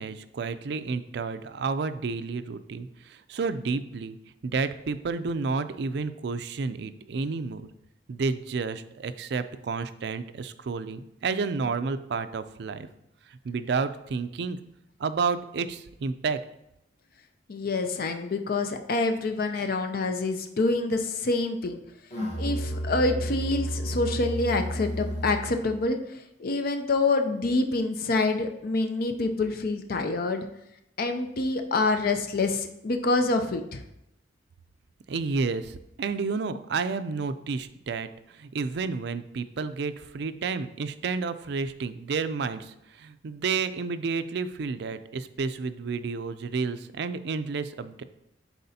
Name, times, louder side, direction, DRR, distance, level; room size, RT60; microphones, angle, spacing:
voice 1, 0.0-4.2 4.4-7.7 8.1-12.9 13.3-14.6 15.0-16.4 19.5-19.7 35.1-48.0, right 4 dB, 65° right, 12 dB, 0.4 m, -31 dB
voice 2, 17.5-21.8 22.4-30.4 31.0-33.8, left 3 dB, 55° left, 6 dB, 0.5 m, -27 dB
Musical instrument, 22.1-25.6, equal, 40° left, 1.3 m, -31 dB
10.5 x 4.2 x 2.8 m, 0.82 s
head